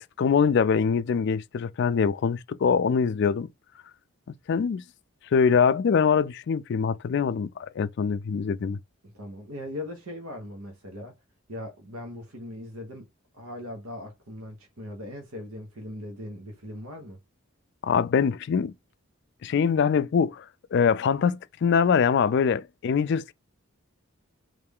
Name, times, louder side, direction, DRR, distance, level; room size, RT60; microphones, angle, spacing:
voice 1, 0.2-3.5 4.5-4.8 5.3-8.8 17.8-18.7 19.4-20.4 20.7-23.3, left 6 dB, 55° left, 0.3 m, -23 dB
voice 2, 9.0-11.2 11.5-13.1 13.3-17.2, left 1 dB, 85° right, 1.1 m, -39 dB
3.3 x 2.5 x 3.5 m
head